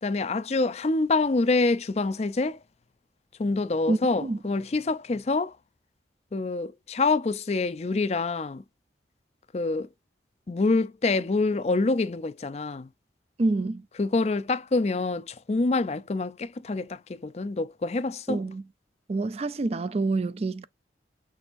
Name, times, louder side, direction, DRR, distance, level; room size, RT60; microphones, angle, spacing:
voice 1, 0.0-2.6 3.4-5.5 6.3-8.6 9.5-9.9 10.5-12.9 14.0-18.4, left 3 dB, 35° left, 0.4 m, -26 dB
voice 2, 3.9-4.4 13.4-13.8 18.3-18.6 19.1-20.6, right 2 dB, 35° right, 0.4 m, -27 dB
6.2 x 3.3 x 2.5 m
head